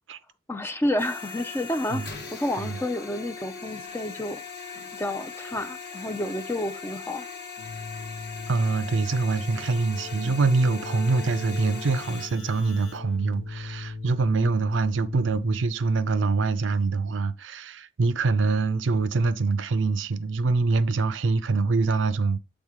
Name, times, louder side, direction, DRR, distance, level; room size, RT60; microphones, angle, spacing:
voice 1, 0.5-4.4 4.9-7.3, left 1 dB, 10° left, 0.4 m, -30 dB
sound 1, 1.0-12.3, left 5 dB, 55° left, 1.2 m, -39 dB
Keyboard (musical), 7.6-15.9, left 3 dB, 80° left, 1.7 m, -39 dB
voice 2, 8.5-22.4, right 3 dB, 65° right, 0.5 m, -24 dB
7.2 x 3.6 x 4.9 m
head